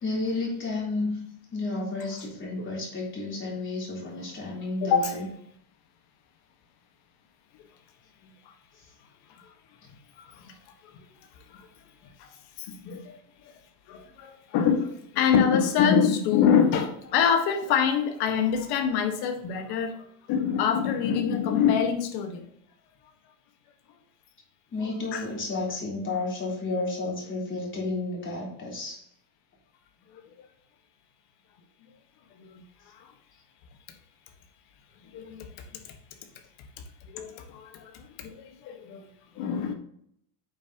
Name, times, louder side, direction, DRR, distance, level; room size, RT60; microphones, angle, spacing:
voice 1, 0.0-1.3 1.5-5.3 24.7-29.1, left 2 dB, 25° left, 3.6 m, -31 dB
voice 2, 4.8-5.1 8.2-8.5 9.4-9.5 9.9-10.5 10.9-11.1 11.5-11.7 12.2-12.3 12.6-13.2 13.4-13.5 13.9-22.5 25.1-25.3 30.2-30.3 32.4-33.1 35.1-35.9 37.1-39.1 39.3-39.7, left 7 dB, 55° left, 1.6 m, -26 dB
8.7 x 7.2 x 3.0 m
cardioid pair, 160°, 45 cm